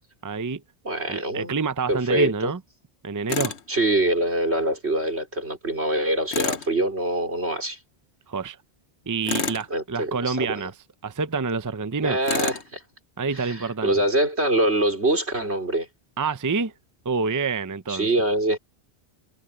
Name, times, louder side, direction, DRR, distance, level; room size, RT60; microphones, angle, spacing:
voice 1, 0.2-0.6 1.1-2.6 3.0-3.5 8.3-8.6 9.1-10.7 11.0-12.2 13.2-13.9 16.2-16.7 17.0-18.1, right 4 dB, 20° right, 0.6 m, -27 dB
voice 2, 0.8-1.5 1.9-2.5 3.7-7.8 9.7-10.7 12.0-12.8 13.3-15.9 17.9-18.6, right 1 dB, 80° right, 5.1 m, -24 dB
Tools, 3.3-3.6 6.3-6.7 9.2-9.7 12.2-12.7, left 6 dB, 85° left, 1.3 m, -28 dB
omnidirectional pair, 1.1 m